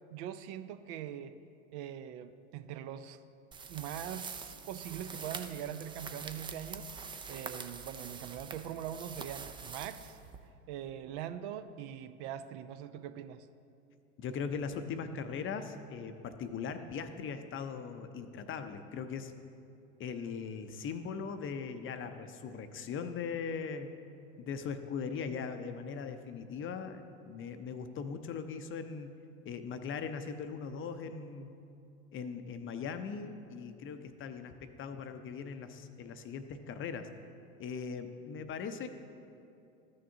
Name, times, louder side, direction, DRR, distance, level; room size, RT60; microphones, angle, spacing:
voice 1, 0.1-1.4 1.7-3.2 3.7-6.9 7.3-10.2 10.7-13.5, right 10 dB, 60° right, 10 dB, 0.6 m, -42 dB
sound 1, 3.5-10.7, right 5 dB, 15° right, 0.3 m, -45 dB
voice 2, 14.2-19.3 20.0-23.9 24.4-31.5 32.1-37.1 37.6-38.9, left 6 dB, 30° left, 9 dB, 0.6 m, -40 dB
13.5 x 6.4 x 2.8 m, 2.6 s
hypercardioid pair, 85°, 39 cm